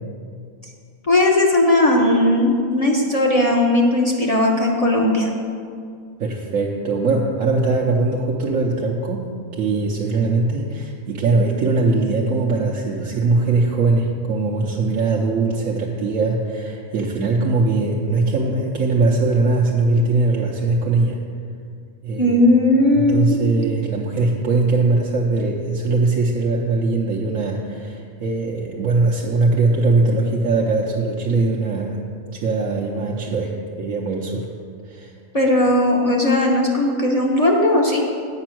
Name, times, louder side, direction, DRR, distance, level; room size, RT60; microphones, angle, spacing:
voice 1, 1.0-5.3 22.2-23.4 35.3-38.0, left 1 dB, 30° left, -1 dB, 0.8 m, -17 dB
voice 2, 6.2-9.3 9.6-21.2 22.0-22.4 23.0-32.0 32.3-34.5 34.8-35.1, right 3 dB, 65° right, -3 dB, 1.1 m, -21 dB
8.6 x 5.4 x 7.6 m, 2.3 s
omnidirectional pair, 1.5 m